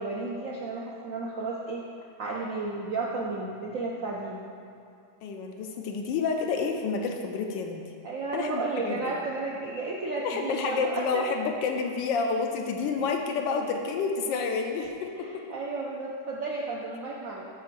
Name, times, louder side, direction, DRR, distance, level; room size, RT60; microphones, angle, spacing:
voice 1, 0.0-1.8 2.2-4.5 8.0-11.4 15.2-17.5, right 3 dB, 65° right, -3 dB, 0.8 m, -33 dB
voice 2, 5.2-7.9 8.3-9.0 10.2-15.4, left 4 dB, 80° left, 3 dB, 1.3 m, -29 dB
7.5 x 3.4 x 6.1 m, 2.6 s
omnidirectional pair, 2.1 m